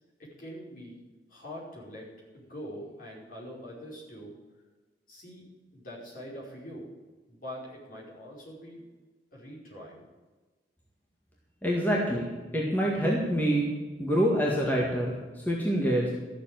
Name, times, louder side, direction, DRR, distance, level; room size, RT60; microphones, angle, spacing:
voice 1, 0.2-1.0 1.3-4.3 5.1-5.5 5.7-6.9 7.3-8.8 9.3-10.1, equal, 50° left, -5 dB, 5.2 m, -43 dB
voice 2, 11.6-13.7 14.0-16.1, equal, 10° left, -3 dB, 1.9 m, -26 dB
13.5 x 7.0 x 9.0 m, 1.3 s
head